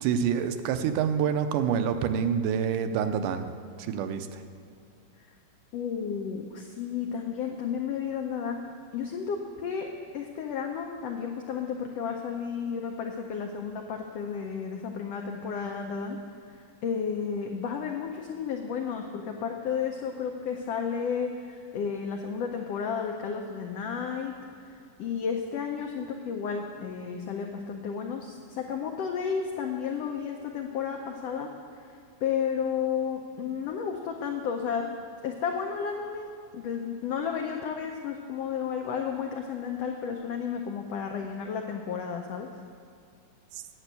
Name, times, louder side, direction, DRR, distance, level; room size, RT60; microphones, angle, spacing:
voice 1, 0.0-3.5 3.8-4.4 43.5-43.6, right 7 dB, 85° right, 9 dB, 2.1 m, -27 dB
voice 2, 5.7-9.9 10.1-16.2 16.5-24.3 24.7-31.5 32.2-34.8 35.2-42.5, left 6 dB, 90° left, 2 dB, 1.4 m, -32 dB
8.8 x 7.5 x 8.1 m, 2.4 s
omnidirectional pair, 3.7 m